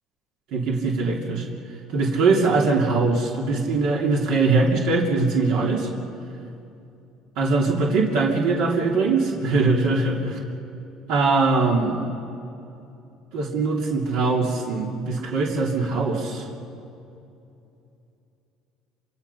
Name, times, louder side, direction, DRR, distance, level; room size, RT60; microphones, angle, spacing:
voice 1, 0.5-1.5 1.9-5.9 7.4-10.4 11.1-12.1 13.3-16.4, right 3 dB, 70° right, -1 dB, 2.9 m, -22 dB
26.5 x 25.0 x 5.7 m, 2.7 s
cardioid pair, 135°, 0 cm